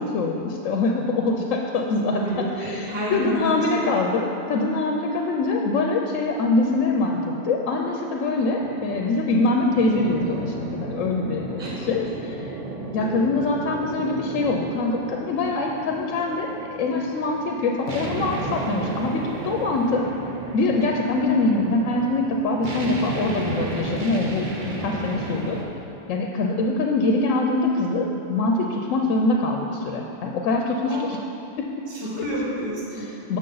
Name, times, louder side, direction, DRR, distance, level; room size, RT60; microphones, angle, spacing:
voice 1, 0.0-2.2 2.6-12.5 12.9-20.0 20.5-25.6 26.1-31.2 31.6-31.7 32.2-32.3 32.9-33.4, left 3 dB, 90° left, 1 dB, 1.0 m, -24 dB
voice 2, 2.1-3.8 5.1-5.4 11.6-11.9 30.9-31.0 31.9-33.1, right 1 dB, 20° right, -5 dB, 1.2 m, -30 dB
sound 1, 8.6-25.6, right 3 dB, 45° right, 0.7 m, -34 dB
6.7 x 6.5 x 3.9 m, 2.7 s
omnidirectional pair, 1.3 m